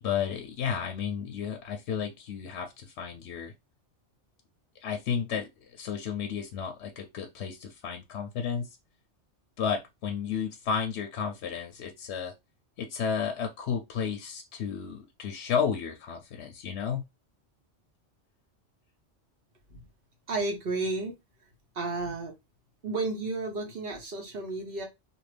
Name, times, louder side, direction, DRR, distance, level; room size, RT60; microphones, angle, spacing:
voice 1, 0.0-3.5 4.8-8.8 9.6-12.3 12.8-17.0, left 7 dB, 70° left, 0.8 m, -32 dB
voice 2, 20.3-21.2 21.7-22.4 22.8-24.8, right 3 dB, 55° right, 1.0 m, -32 dB
2.6 x 2.6 x 3.2 m
omnidirectional pair, 1.2 m